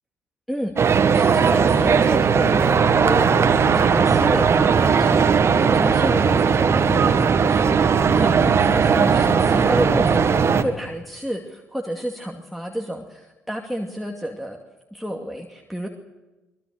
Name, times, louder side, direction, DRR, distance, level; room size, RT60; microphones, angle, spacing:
voice 1, 0.5-14.6 14.9-15.9, equal, ahead, 2 dB, 2.4 m, -30 dB
sound 1, 0.8-10.6, right 6 dB, 40° right, 1.9 m, -18 dB
24.0 x 21.0 x 6.8 m, 1.1 s
figure-of-eight pair, 45°, 7 cm